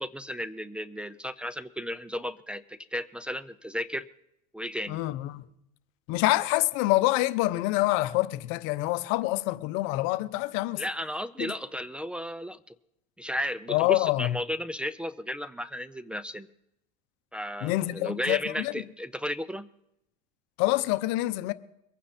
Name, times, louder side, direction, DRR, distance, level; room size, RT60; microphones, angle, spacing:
voice 1, 0.0-4.1 4.5-5.0 10.8-12.7 13.2-16.5 17.3-19.7, equal, 5° right, 0.5 m, -34 dB
voice 2, 4.9-5.4 6.1-10.8 11.4-11.5 13.7-14.4 17.6-18.7 20.6-21.5, left 18 dB, 70° left, 0.8 m, -26 dB
23.0 x 9.3 x 4.2 m
supercardioid pair, 115°, 21 cm